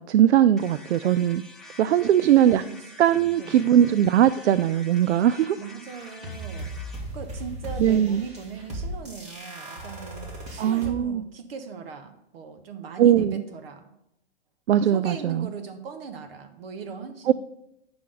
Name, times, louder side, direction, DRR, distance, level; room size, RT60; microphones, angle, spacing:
voice 1, 0.0-1.4 1.8-2.6 3.0-5.6 7.8-8.2 10.6-11.2 13.0-13.4 14.7-15.5 17.3-17.4, right 10 dB, 80° right, 14 dB, 0.5 m, -20 dB
sound 1, 0.6-7.1, left 2 dB, ahead, 0.5 m, -47 dB
voice 2, 3.4-3.8 5.6-6.7 7.1-13.9 14.9-17.3, right 5 dB, 60° right, 8 dB, 1.4 m, -39 dB
sound 2, 5.9-10.9, right 1 dB, 20° right, 1.6 m, -37 dB
9.5 x 6.0 x 3.9 m, 0.86 s
hypercardioid pair, 135°, 33 cm